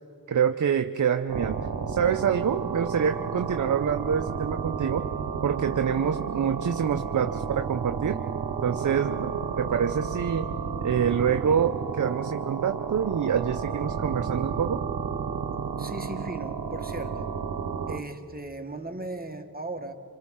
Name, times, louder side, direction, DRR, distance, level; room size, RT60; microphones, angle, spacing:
voice 1, 0.3-1.6 1.9-5.1 5.4-8.2 8.6-10.5 10.8-14.8, right 7 dB, 50° right, 8 dB, 0.7 m, -26 dB
sound 1, 1.3-18.0, right 6 dB, 65° right, 1.2 m, -32 dB
voice 2, 15.8-17.3 17.9-19.9, right 2 dB, 25° right, 4 dB, 1.6 m, -37 dB
27.0 x 26.5 x 3.8 m, 2.6 s
cardioid pair, 45°, 38 cm